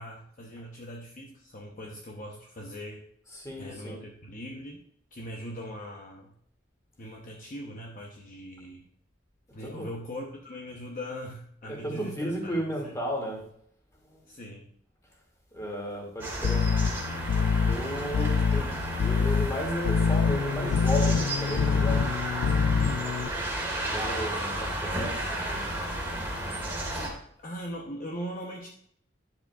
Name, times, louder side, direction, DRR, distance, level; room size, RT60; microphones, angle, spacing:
voice 1, 0.0-3.0 3.6-4.8 5.1-6.3 7.0-8.9 9.5-12.8 14.3-14.7 24.0-24.1 26.9-28.7, equal, 45° left, -1 dB, 0.9 m, -40 dB
voice 2, 3.3-4.0 9.6-9.9 11.6-13.4 14.0-14.2 15.5-16.7 17.6-18.7 19.0-22.0 23.8-25.7, equal, 15° left, 0 dB, 2.2 m, -34 dB
sound 1, 16.2-27.1, right 1 dB, 10° right, 1.8 m, -33 dB
sound 2, 16.4-23.3, left 5 dB, 80° left, 0.3 m, -26 dB
10.0 x 7.4 x 2.4 m, 0.66 s
head